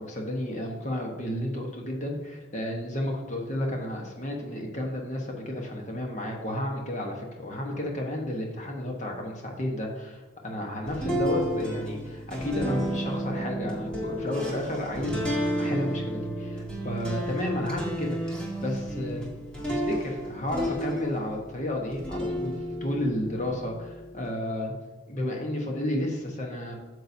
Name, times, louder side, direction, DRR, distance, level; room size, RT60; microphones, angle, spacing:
voice 1, 0.0-19.4 19.7-24.7 25.1-26.7, left 1 dB, 40° left, 0 dB, 1.2 m, -32 dB
sound 1, 10.9-21.5 21.9-24.2, equal, 5° left, 1.6 m, -32 dB
8.6 x 6.7 x 2.7 m, 1.2 s
head